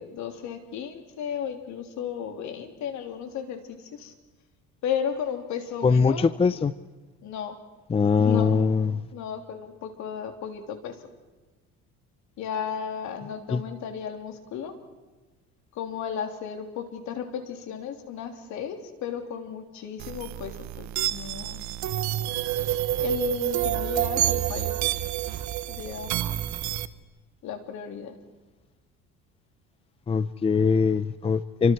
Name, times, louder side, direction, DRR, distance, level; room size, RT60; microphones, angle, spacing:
voice 1, 0.0-4.1 4.8-6.3 7.2-7.6 8.2-8.6 9.1-11.0 12.4-14.7 15.7-21.6 23.0-24.9 25.7-26.1 27.4-28.2, left 8 dB, 65° left, 3.4 m, -34 dB
voice 2, 5.8-6.7 7.9-9.0 13.5-13.6 30.1-31.7, left 5 dB, 20° left, 0.6 m, -22 dB
sound 1, 20.0-26.9, right 13 dB, 65° right, 1.0 m, -28 dB
28.0 x 25.0 x 4.6 m
cardioid pair, 115°, 31 cm